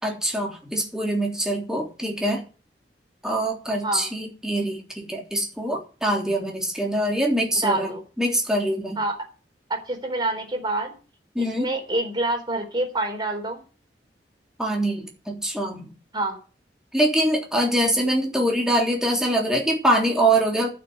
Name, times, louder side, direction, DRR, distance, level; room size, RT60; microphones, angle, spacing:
voice 1, 0.0-2.4 3.2-9.0 11.3-11.7 14.6-15.9 16.9-20.7, right 1 dB, 5° right, 0 dB, 3.4 m, -24 dB
voice 2, 7.5-8.0 9.0-9.2 9.7-10.9 11.4-13.6 16.1-16.4, right 2 dB, 25° right, 2 dB, 4.1 m, -27 dB
11.5 x 6.9 x 9.5 m, 0.35 s
head